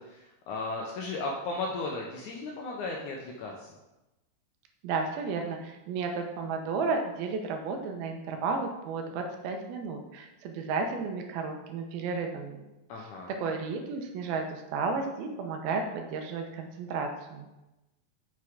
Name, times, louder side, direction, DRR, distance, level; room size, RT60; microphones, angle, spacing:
voice 1, 0.0-3.7 12.9-13.3, left 3 dB, 80° left, -1 dB, 1.7 m, -35 dB
voice 2, 4.8-12.6 13.4-17.5, right 4 dB, 85° right, 4 dB, 2.7 m, -33 dB
7.6 x 6.1 x 3.6 m, 1.0 s
omnidirectional pair, 4.3 m